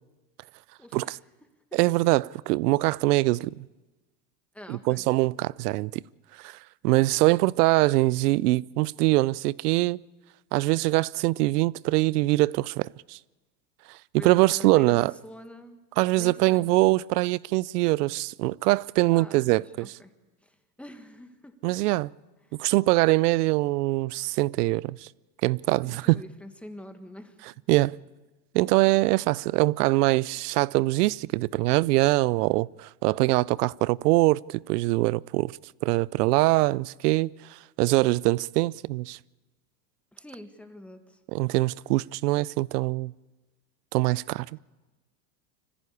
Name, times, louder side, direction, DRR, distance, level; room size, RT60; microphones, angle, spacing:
voice 1, 0.8-1.2 1.7-1.8 4.5-5.1 14.2-15.8 16.1-16.7 19.1-20.1 20.4-21.5 25.8-27.4 40.1-41.2, left 1 dB, 5° left, 1.7 m, -45 dB
voice 2, 1.7-3.5 4.7-6.0 6.4-6.6 6.8-10.0 10.5-13.2 14.2-15.1 16.0-20.0 21.6-22.1 22.6-25.0 25.4-26.2 27.7-28.0 28.5-35.5 35.8-37.3 37.8-39.2 41.3-43.1 43.9-44.5, right 20 dB, 70° right, 0.6 m, -23 dB
25.5 x 15.0 x 8.4 m
supercardioid pair, 125°, 49 cm